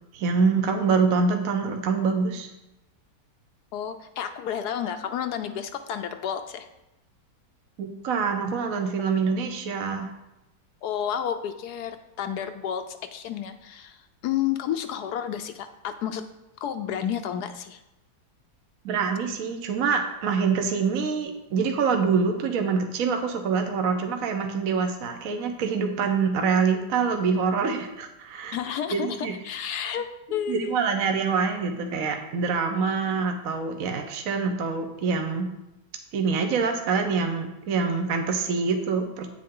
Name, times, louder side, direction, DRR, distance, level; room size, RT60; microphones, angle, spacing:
voice 1, 0.1-2.5 7.8-10.1 18.8-28.6 28.9-29.3 30.5-35.5 36.1-39.3, right 5 dB, 60° right, 5 dB, 1.1 m, -25 dB
voice 2, 3.7-6.7 9.1-9.2 10.8-14.0 14.2-16.2 16.6-17.8 28.5-30.7, left 9 dB, 75° left, 9 dB, 1.0 m, -31 dB
8.8 x 7.6 x 3.8 m, 0.93 s
omnidirectional pair, 2.0 m